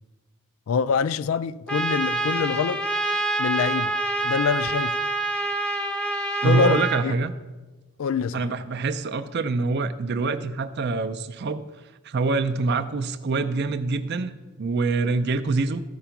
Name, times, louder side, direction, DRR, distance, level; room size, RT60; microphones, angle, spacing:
voice 1, 0.7-2.8 3.4-3.9 4.2-5.0 6.4-7.1 8.0-8.5, left 6 dB, 65° left, 0.3 m, -25 dB
Trumpet, 1.7-7.1, right 2 dB, 5° left, 0.5 m, -26 dB
voice 2, 6.4-7.3 8.3-11.6 12.0-15.8, right 3 dB, 50° right, 0.4 m, -25 dB
13.5 x 5.0 x 5.8 m
head